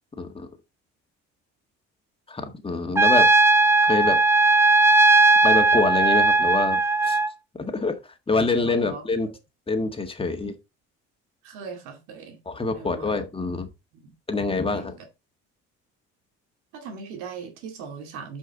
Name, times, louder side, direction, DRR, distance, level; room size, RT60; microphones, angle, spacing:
voice 1, 0.2-0.5 2.3-3.3 3.8-4.2 5.4-7.2 7.6-8.0 8.3-9.3 9.7-10.5 12.5-13.7 14.3-14.9, left 3 dB, 20° left, 1.7 m, -26 dB
Trumpet, 2.9-7.3, right 3 dB, 10° right, 0.5 m, -17 dB
voice 2, 8.6-9.1 11.4-12.4 12.7-13.3 13.9-14.1 14.7-15.0 16.7-18.4, right 5 dB, 85° right, 2.4 m, -39 dB
8.5 x 5.6 x 3.9 m
cardioid pair, 95°, 29 cm